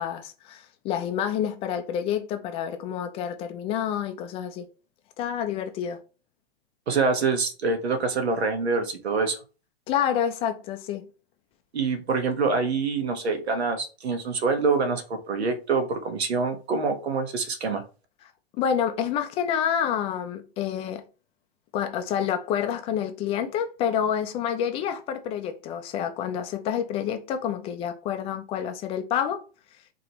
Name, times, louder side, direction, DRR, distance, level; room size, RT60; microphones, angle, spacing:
voice 1, 0.0-4.7 5.2-6.0 9.9-11.1 18.6-21.0 21.7-29.4, left 9 dB, 20° left, 0.4 m, -28 dB
voice 2, 6.9-9.4 11.7-17.8, right 4 dB, 85° right, 1.3 m, -25 dB
5.0 x 3.0 x 2.9 m
hypercardioid pair, 130°, 31 cm